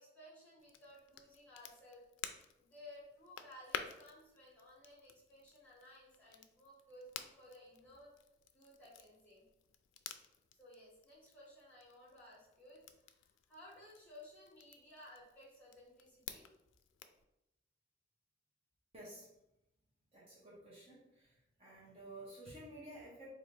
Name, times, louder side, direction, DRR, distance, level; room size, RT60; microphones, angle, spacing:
voice 1, 0.0-2.0 2.6-8.1 8.5-9.4 10.6-16.5, left 1 dB, 10° left, -7 dB, 1.5 m, -58 dB
Crackle, 0.6-17.2, left 8 dB, 90° left, 0.3 m, -52 dB
voice 2, 18.9-19.3 20.1-21.3 21.6-23.3, right 1 dB, 35° right, -7 dB, 1.0 m, -52 dB
3.8 x 2.6 x 3.2 m, 0.87 s
head